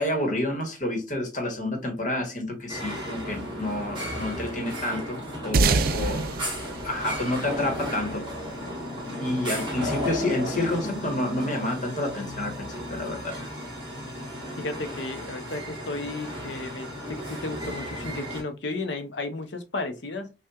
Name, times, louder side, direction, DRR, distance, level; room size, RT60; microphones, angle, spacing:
voice 1, 0.0-6.3 6.8-8.3 9.2-13.4, left 1 dB, 40° left, 1.2 m, -29 dB
sound 1, 2.7-18.4, equal, 25° right, 1.8 m, -34 dB
sound 2, 5.5-8.3, right 4 dB, 50° right, 0.3 m, -26 dB
voice 2, 14.6-20.3, left 2 dB, 70° left, 0.7 m, -34 dB
5.5 x 2.4 x 2.3 m
head